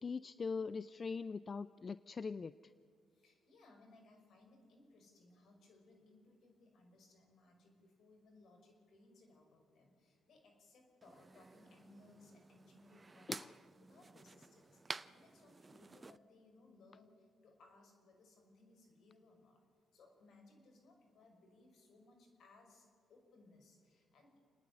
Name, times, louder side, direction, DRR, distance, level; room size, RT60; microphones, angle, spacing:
voice 1, 0.0-2.7 13.3-13.5, left 5 dB, 35° left, 16 dB, 0.4 m, -42 dB
voice 2, 3.1-13.5 13.8-19.6 19.9-24.4, left 2 dB, 65° left, 3 dB, 5.8 m, -65 dB
sound 1, 11.0-16.2, right 3 dB, 25° right, 0.6 m, -51 dB
29.5 x 10.0 x 9.6 m, 2.2 s
cardioid pair, 90°, 0 cm